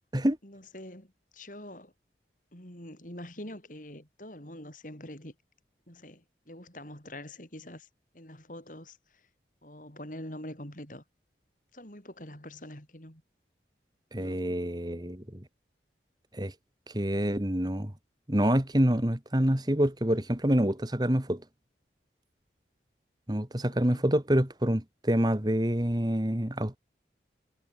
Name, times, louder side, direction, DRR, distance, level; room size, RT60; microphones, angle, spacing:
voice 1, 0.4-1.9 2.5-5.3 5.9-7.9 8.1-9.0 9.6-11.0 11.7-13.2 14.2-14.4 23.7-24.1, left 1 dB, 45° left, 6.9 m, -45 dB
voice 2, 14.1-15.4 16.3-16.5 16.9-17.9 18.3-21.4 23.3-26.8, equal, 25° right, 1.8 m, -27 dB
head